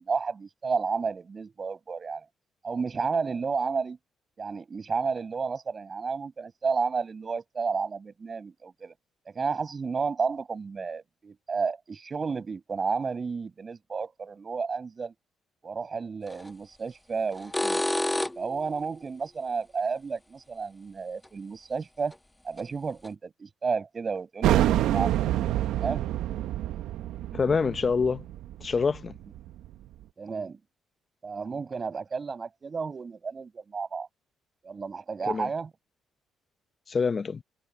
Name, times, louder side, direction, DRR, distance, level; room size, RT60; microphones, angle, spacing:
voice 1, 0.0-2.2 2.6-4.0 4.4-8.9 9.3-15.1 15.6-17.8 18.4-22.1 22.4-25.2 25.7-26.1 30.2-30.6 31.2-34.1 34.6-35.7, right 5 dB, 40° right, 6.1 m, -32 dB
sound 1, 16.3-16.5 17.3-18.6 21.3-21.4 22.1-22.2 22.6-22.7 23.0-23.1, left 1 dB, 10° left, 1.5 m, -29 dB
sound 2, 24.4-29.7, right 13 dB, 80° right, 1.2 m, -27 dB
voice 2, 27.3-28.2 28.6-29.1 35.2-35.5 36.9-37.4, left 5 dB, 40° left, 0.8 m, -26 dB
cardioid pair, 75°, 0 cm